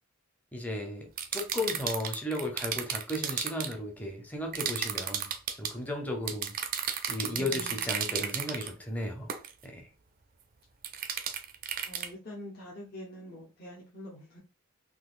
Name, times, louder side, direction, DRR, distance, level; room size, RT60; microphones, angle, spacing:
voice 1, 0.5-5.3 5.6-6.5 7.1-9.3 9.6-9.9, left 1 dB, 5° left, 0.6 m, -35 dB
sound 1, 1.2-3.7 4.5-5.7 6.3-8.7 9.3-9.5 10.8-12.1, right 8 dB, 40° right, 0.4 m, -33 dB
voice 2, 7.3-8.3 11.8-14.4, equal, 45° left, 0.8 m, -45 dB
3.8 x 2.7 x 2.4 m
head